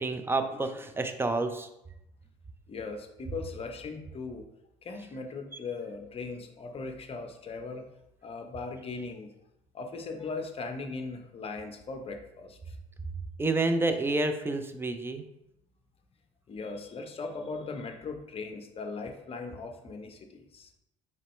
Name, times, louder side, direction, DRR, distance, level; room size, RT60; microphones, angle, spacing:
voice 1, 0.0-1.7 13.4-15.2, right 2 dB, 15° right, 7 dB, 0.5 m, -29 dB
voice 2, 2.7-4.4 4.8-7.8 8.2-9.3 9.7-12.7 13.5-13.6 16.5-20.7, left 4 dB, 35° left, 5 dB, 0.7 m, -39 dB
4.2 x 3.1 x 3.1 m, 0.83 s
hypercardioid pair, 65°, 16 cm